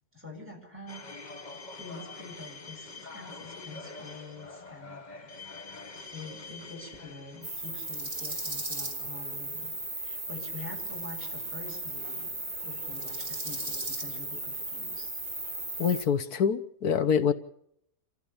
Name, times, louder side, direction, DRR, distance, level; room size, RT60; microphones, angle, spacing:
voice 1, 0.1-5.3 6.1-12.4 12.6-15.1, left 3 dB, 5° right, -1 dB, 7.3 m, -46 dB
sound 1, 0.9-8.1, left 3 dB, 30° left, 1.3 m, -45 dB
sound 2, 7.4-16.0, right 2 dB, 25° right, 3.2 m, -36 dB
voice 2, 15.8-17.3, left 7 dB, 85° left, 11 dB, 1.6 m, -25 dB
27.5 x 15.0 x 7.0 m, 0.71 s
omnidirectional pair, 1.6 m